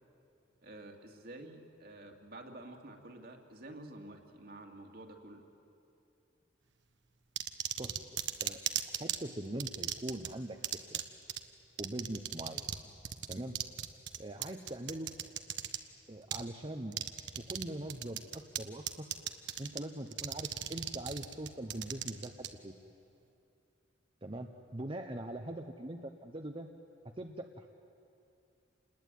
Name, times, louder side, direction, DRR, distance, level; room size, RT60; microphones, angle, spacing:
voice 1, 0.6-5.4, right 1 dB, 55° right, 3 dB, 2.5 m, -50 dB
sound 1, 7.4-9.2 9.6-10.3 10.6-11.0 11.3-11.4 11.8-12.8 13.0-15.8 16.3-16.4 16.9-17.6 17.9-18.6 18.9-19.8 20.1-22.5, right 11 dB, 75° right, 1.3 m, -36 dB
voice 2, 9.0-11.0 11.8-12.7 13.3-13.6 14.2-15.1 16.1-17.0 17.4-19.1 19.6-22.7 24.2-26.7 27.2-27.7, right 1 dB, 30° right, 4 dB, 1.0 m, -42 dB
28.0 x 20.5 x 9.4 m, 2.6 s
head